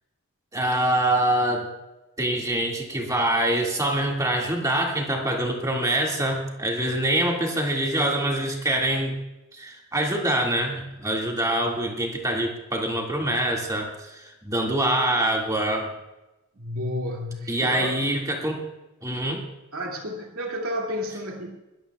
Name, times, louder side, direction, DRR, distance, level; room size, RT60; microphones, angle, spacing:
voice 1, 0.5-1.7 2.2-9.2 9.5-15.9 17.5-18.6 19.0-19.4, right 1 dB, 15° right, 0 dB, 2.0 m, -25 dB
voice 2, 16.5-18.0 19.7-21.5, left 1 dB, 70° right, -1 dB, 2.4 m, -31 dB
21.5 x 14.0 x 2.3 m, 1.0 s
head